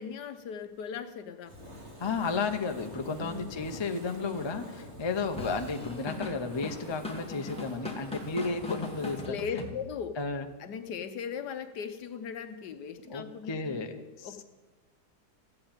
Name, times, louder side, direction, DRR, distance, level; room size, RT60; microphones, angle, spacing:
voice 1, 0.0-1.6 2.2-2.4 3.2-3.6 9.3-10.2 10.6-14.4, left 7 dB, 70° left, 9 dB, 1.4 m, -38 dB
Fire, 1.4-9.3, equal, 40° right, 2.6 m, -47 dB
voice 2, 2.0-9.2 9.5-9.6 10.2-10.5 13.1-13.9 14.2-14.4, left 4 dB, 35° left, 6 dB, 0.4 m, -33 dB
Drum kit / Drum, 5.4-10.2, left 2 dB, 5° left, 1.6 m, -40 dB
14.5 x 7.8 x 8.9 m, 1.2 s
omnidirectional pair, 1.9 m